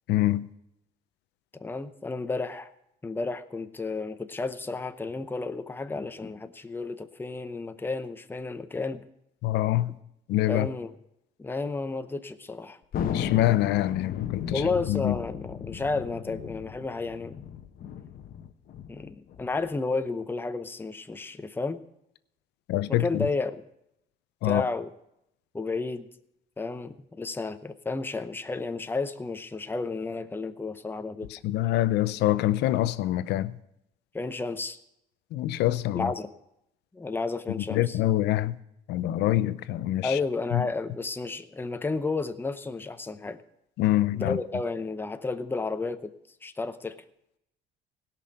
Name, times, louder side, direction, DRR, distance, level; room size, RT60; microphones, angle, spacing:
voice 1, 0.1-0.5 9.4-9.9 10.3-10.7 13.1-14.6 14.9-15.2 22.7-23.3 24.4-24.6 31.3-33.6 35.3-36.1 37.7-38.6 38.9-40.2 40.5-40.7 43.8-44.4, left 14 dB, 80° left, 15 dB, 0.6 m, -25 dB
voice 2, 1.5-2.7 3.0-9.0 10.5-10.9 11.4-12.8 14.5-17.4 18.9-21.8 22.9-23.6 24.4-24.9 25.5-26.1 26.6-31.3 34.1-34.8 35.9-36.3 36.9-38.0 40.0-43.4 44.1-46.1 46.4-47.0, left 3 dB, 10° left, 9 dB, 0.7 m, -32 dB
Thunder, 12.9-19.8, left 8 dB, 60° left, 1.0 m, -36 dB
17.5 x 6.1 x 7.8 m, 0.81 s
cardioid pair, 110°, 17 cm